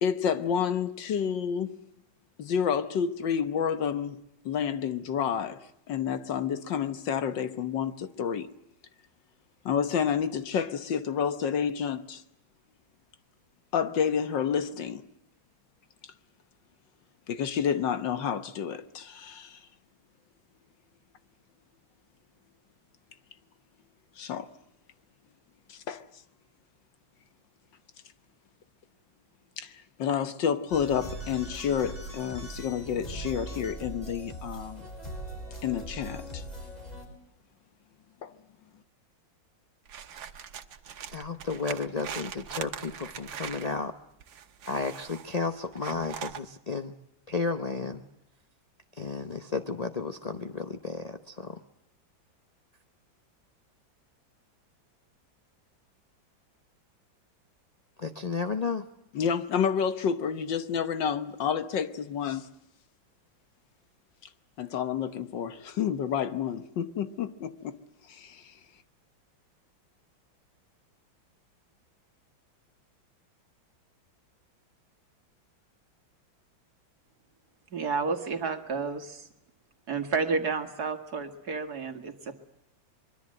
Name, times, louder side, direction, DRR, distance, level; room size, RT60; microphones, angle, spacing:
voice 1, 0.0-1.8 2.4-4.2 4.5-8.5 9.7-12.2 13.7-15.0 17.3-19.6 24.2-24.5 25.7-26.0 29.6-34.9 35.6-36.4 38.2-38.3 59.1-62.5 64.6-67.8 68.1-68.5, left 7 dB, 70° left, 1.8 m, -29 dB
sound 1, 30.7-37.1, right 1 dB, 20° left, 5.0 m, -40 dB
sound 2, 39.9-43.7 44.2-45.4 45.7-46.4, right 8 dB, 75° right, 1.9 m, -41 dB
voice 2, 41.1-43.9 44.7-46.9 47.3-48.0 49.0-51.6 58.0-58.8, left 4 dB, 40° left, 0.5 m, -33 dB
voice 3, 77.7-79.3 79.9-82.4, right 4 dB, 55° right, 2.3 m, -31 dB
24.0 x 22.5 x 7.7 m
omnidirectional pair, 2.1 m